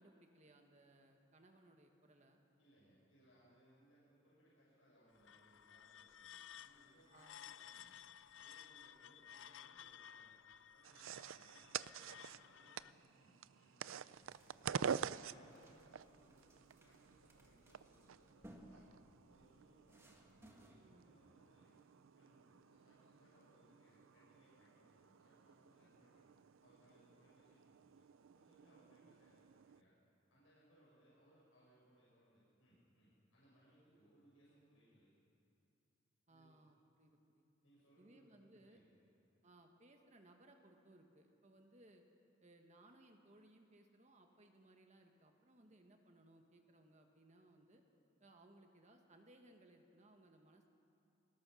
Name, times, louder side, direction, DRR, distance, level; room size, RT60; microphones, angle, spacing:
voice 1, 0.0-2.4 7.1-7.4 15.5-15.8 20.8-21.2 25.8-25.9 28.6-29.1 36.3-37.4 38.0-38.8 39.4-42.0 42.4-47.8 48.2-50.7, right 1 dB, 35° right, 4 dB, 1.5 m, -65 dB
voice 2, 2.6-8.0 8.3-10.4 10.7-14.9 15.1-18.9 19.3-21.8 22.1-26.3 26.6-28.0 28.3-30.0 30.3-35.1 36.3-36.7 37.6-39.0, equal, 85° left, -7 dB, 5.9 m, -70 dB
sound 1, 5.1-12.9, left 9 dB, 70° left, 0.5 m, -57 dB
sound 2, 10.8-29.8, right 7 dB, 90° right, 0.4 m, -49 dB
sound 3, 14.1-20.8, equal, 15° right, 1.8 m, -64 dB
22.5 x 20.0 x 6.3 m, 2.7 s
head